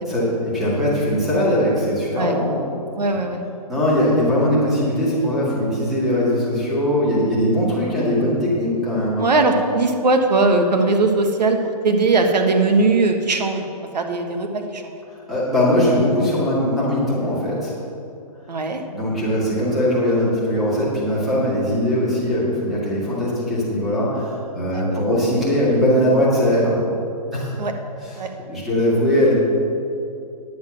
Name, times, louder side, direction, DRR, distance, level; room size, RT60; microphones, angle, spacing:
voice 1, 0.1-2.6 3.7-9.2 15.3-17.7 18.8-26.8 27.3-27.5 28.0-29.3, equal, ahead, -9 dB, 2.0 m, -20 dB
voice 2, 3.0-3.4 9.2-11.6 11.8-13.7 13.9-14.9 18.5-18.8 24.7-25.0 27.6-27.7 28.2-28.3, right 3 dB, 85° right, 4 dB, 1.4 m, -19 dB
10.5 x 7.7 x 6.2 m, 2.6 s
hypercardioid pair, 170°, 21 cm